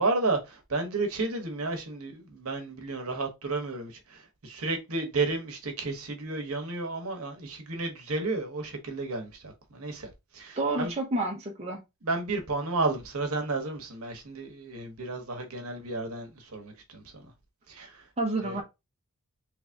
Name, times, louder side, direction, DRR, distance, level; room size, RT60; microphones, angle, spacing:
voice 1, 0.0-10.9 12.0-17.2 17.7-18.0 18.4-18.6, right 3 dB, 70° right, 0.9 m, -32 dB
voice 2, 10.6-11.8 18.2-18.6, right 2 dB, 30° right, 0.7 m, -29 dB
3.2 x 2.6 x 3.4 m
head